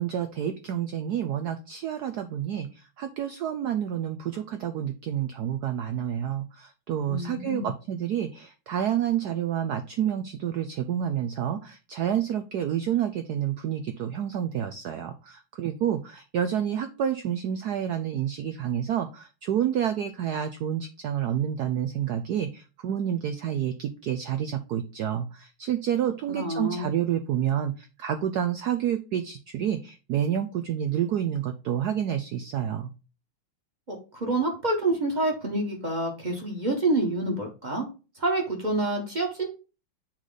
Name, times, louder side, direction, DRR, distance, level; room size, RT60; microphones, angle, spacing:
voice 1, 0.0-2.7 3.0-32.9, right 10 dB, 85° right, 8 dB, 0.8 m, -29 dB
voice 2, 7.1-7.7 26.3-26.9 33.9-37.9 38.2-39.5, right 2 dB, 25° right, 1 dB, 1.2 m, -27 dB
7.5 x 3.3 x 3.9 m, 0.31 s
omnidirectional pair, 2.4 m